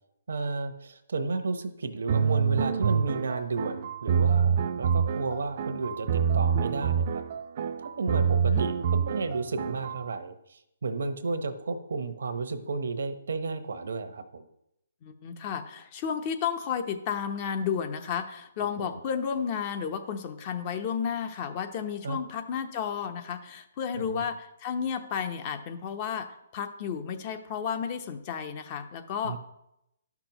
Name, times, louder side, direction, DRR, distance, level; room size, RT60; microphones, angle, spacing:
voice 1, 0.3-7.2 8.0-14.4 18.8-19.0 22.0-22.2 24.0-24.2 29.2-29.4, right 3 dB, 75° right, 9 dB, 0.9 m, -33 dB
sound 1, 2.1-10.0, right 7 dB, 50° right, 0.5 m, -26 dB
voice 2, 8.2-8.6 15.0-26.3 26.5-29.4, left 7 dB, 35° left, 8 dB, 0.8 m, -32 dB
11.5 x 6.0 x 3.0 m, 0.81 s
hypercardioid pair, 145°, 0 cm